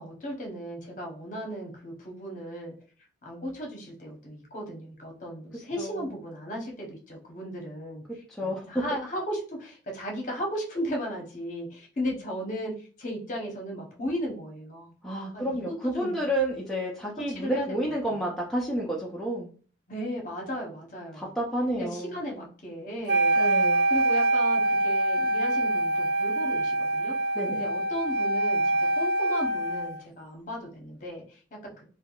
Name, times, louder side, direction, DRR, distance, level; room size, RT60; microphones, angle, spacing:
voice 1, 0.0-2.7 3.2-8.0 8.4-14.9 15.3-15.6 15.9-16.3 17.3-17.7 18.1-18.2 19.9-21.3 21.7-31.8, equal, 40° left, 0 dB, 0.8 m, -36 dB
voice 2, 8.3-8.8 15.0-19.5 21.1-22.2 23.4-23.9 27.4-27.6, right 1 dB, ahead, -4 dB, 0.4 m, -30 dB
Wind instrument woodwind instrument, 23.1-30.0, right 1 dB, 60° right, 0.4 m, -25 dB
3.4 x 2.2 x 2.3 m, 0.41 s
head